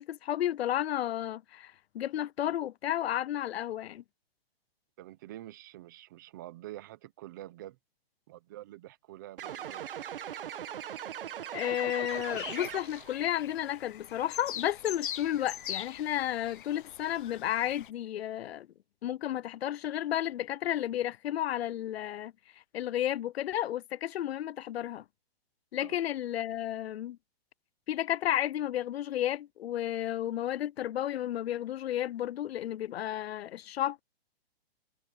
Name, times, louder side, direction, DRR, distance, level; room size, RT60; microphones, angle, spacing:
voice 1, 0.0-4.0 11.5-18.7 19.0-22.3 22.7-25.0 25.7-27.2 27.9-34.0, left 12 dB, 90° left, 0.6 m, -32 dB
voice 2, 5.0-7.8 8.3-9.8 25.8-26.0, right 15 dB, 20° right, 0.6 m, -47 dB
sound 1, 9.4-13.2, right 10 dB, 65° right, 1.7 m, -40 dB
sound 2, 12.1-17.9, left 11 dB, 55° left, 0.8 m, -42 dB
hypercardioid pair, 175°, 30 cm